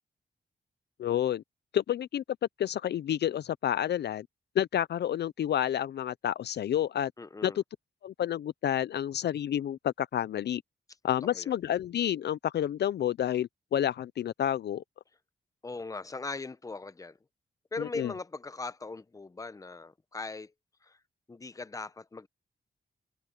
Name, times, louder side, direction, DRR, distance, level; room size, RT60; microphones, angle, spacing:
voice 1, 1.0-1.4 1.7-2.2 2.6-4.3 4.6-7.1 7.4-7.6 8.0-10.6 11.0-14.8 17.8-18.1, left 10 dB, 65° left, 0.4 m, -29 dB
voice 2, 7.2-7.6 11.2-11.5 15.6-17.2 17.7-20.5 20.8-21.0 21.3-22.3, left 3 dB, 20° left, 0.7 m, -40 dB
wide cardioid pair, 120°, 18 cm